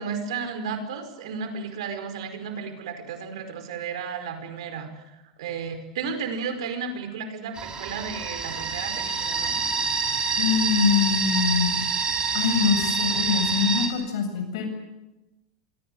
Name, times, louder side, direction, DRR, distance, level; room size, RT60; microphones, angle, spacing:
voice 1, 0.0-9.6, right 5 dB, 75° right, 8 dB, 4.8 m, -33 dB
sound 1, 7.5-13.9, right 5 dB, 25° right, 5.5 m, -26 dB
voice 2, 10.4-11.8 12.3-14.7, left 6 dB, 70° left, 7 dB, 7.7 m, -24 dB
26.5 x 22.5 x 7.8 m, 1.0 s
hypercardioid pair, 110°, 3 cm